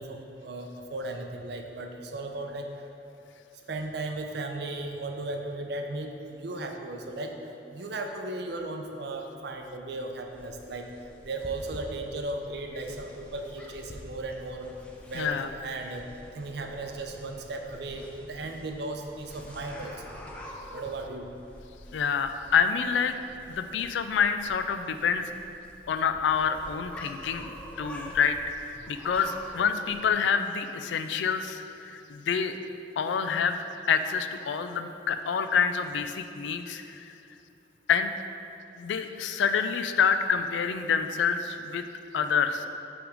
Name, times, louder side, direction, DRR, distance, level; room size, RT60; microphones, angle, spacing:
voice 1, 0.0-2.9 3.7-7.4 7.7-10.9 11.2-14.7 15.1-16.1 16.3-20.1 20.7-21.3, right 2 dB, 60° right, 4 dB, 0.5 m, -36 dB
sound 1, 10.2-30.1, equal, 5° left, 0.5 m, -47 dB
voice 2, 15.1-15.5 21.9-23.1 23.5-25.3 25.9-27.5 27.8-32.6 33.0-33.6 33.9-37.1 37.9-38.1 38.8-41.8 42.1-42.7, left 6 dB, 80° left, 9 dB, 0.3 m, -27 dB
5.9 x 3.6 x 5.0 m, 2.8 s
head